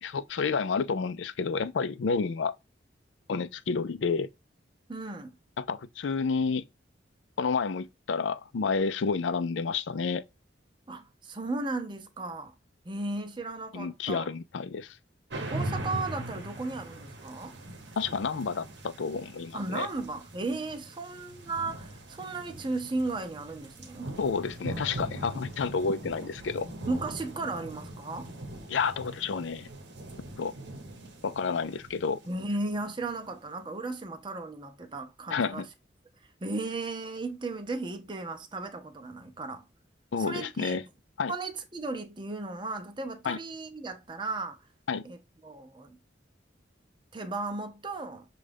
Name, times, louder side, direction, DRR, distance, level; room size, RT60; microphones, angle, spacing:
voice 1, 0.0-2.5 3.3-4.3 5.6-6.6 7.4-10.2 13.7-15.0 18.0-19.9 24.2-26.7 28.7-29.7 30.4-30.5 31.2-32.2 35.3-35.7 40.1-40.8 41.2-41.3 43.2-43.4 44.9-45.0, left 5 dB, 80° left, 0.5 m, -30 dB
voice 2, 4.9-5.3 10.9-12.5 12.8-14.3 15.5-17.6 19.5-24.1 26.9-28.3 32.3-35.7 36.4-39.6 40.2-40.8 41.3-44.6 45.0-46.0 47.1-48.3, right 3 dB, 25° right, 0.6 m, -35 dB
sound 1, 15.3-33.1, right 1 dB, 65° right, 0.9 m, -41 dB
6.5 x 2.4 x 3.4 m
head